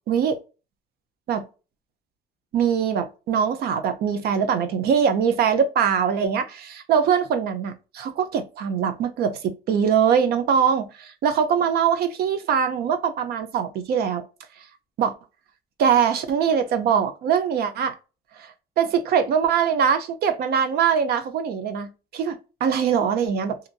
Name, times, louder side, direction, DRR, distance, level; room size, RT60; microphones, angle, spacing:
voice 1, 0.1-0.4 1.3-1.4 2.5-14.2 15.0-15.1 15.8-18.0 18.4-23.7, right 7 dB, 65° right, 0.6 m, -22 dB
2.8 x 2.6 x 2.4 m
cardioid pair, 110°, 17 cm